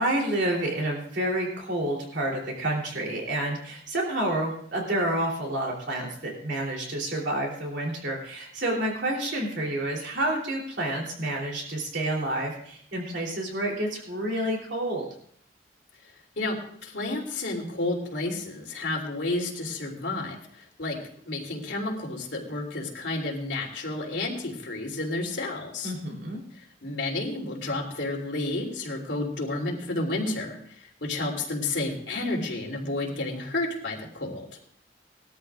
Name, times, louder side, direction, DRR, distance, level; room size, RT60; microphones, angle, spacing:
voice 1, 0.0-15.1 25.8-26.4, right 1 dB, 70° right, -1 dB, 3.4 m, -29 dB
voice 2, 16.4-20.4 20.8-21.0 21.2-25.9 26.8-30.6 31.0-34.5, left 2 dB, 70° left, 0 dB, 3.2 m, -31 dB
20.5 x 13.0 x 2.5 m, 0.63 s
head